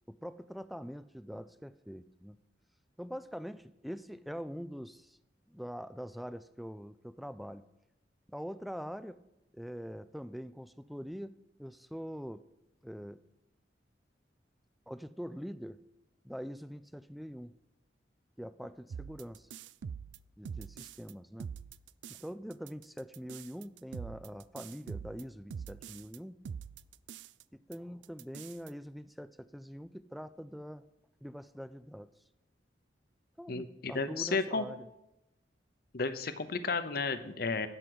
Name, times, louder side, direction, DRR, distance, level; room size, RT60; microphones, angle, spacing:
voice 1, 0.1-2.4 3.0-5.2 5.5-7.7 8.3-9.2 9.5-12.4 12.8-13.2 14.9-15.8 16.2-17.5 18.4-19.5 20.4-21.5 22.1-26.4 27.5-30.8 31.2-32.1 33.4-34.9, equal, ahead, 14 dB, 0.3 m, -44 dB
sound 1, 18.9-21.1 21.4-22.3 22.5-26.2 26.5-27.4 27.7-27.8 28.0-28.7, right 6 dB, 85° right, 0.3 m, -44 dB
voice 2, 33.5-34.6 35.9-37.7, left 4 dB, 55° left, 11 dB, 0.8 m, -33 dB
12.0 x 5.1 x 7.9 m, 0.92 s
head